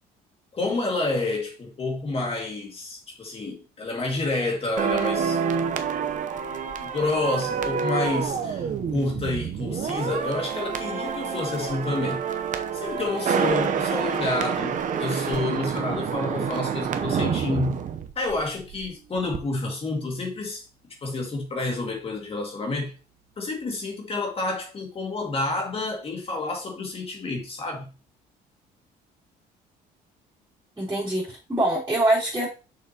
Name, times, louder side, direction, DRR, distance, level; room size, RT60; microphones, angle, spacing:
voice 1, 0.5-5.4 6.8-12.2 12.7-17.8 18.2-20.6 21.0-22.9 23.4-27.9, left 2 dB, 35° left, 2.2 m, -29 dB
sound 1, 4.8-18.9 19.2-19.4, right 7 dB, 50° right, 0.8 m, -28 dB
voice 2, 30.8-32.5, right 1 dB, 15° right, 3.7 m, -24 dB
6.5 x 6.2 x 2.9 m
cardioid pair, 110°, 17 cm